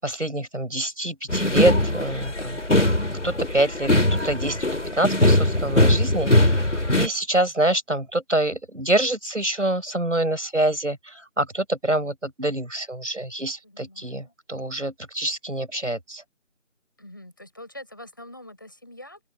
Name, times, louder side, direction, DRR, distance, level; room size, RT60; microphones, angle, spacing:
voice 1, 0.0-2.6 3.2-4.7 4.9-6.6 6.9-16.2, right 1 dB, 65° right, 6.9 m, -26 dB
sound 1, 1.3-7.1, left 1 dB, 60° left, 4.0 m, -21 dB
voice 2, 13.6-14.3 17.0-19.2, left 1 dB, 15° left, 5.7 m, -44 dB
open air
figure-of-eight pair, 180°, 39 cm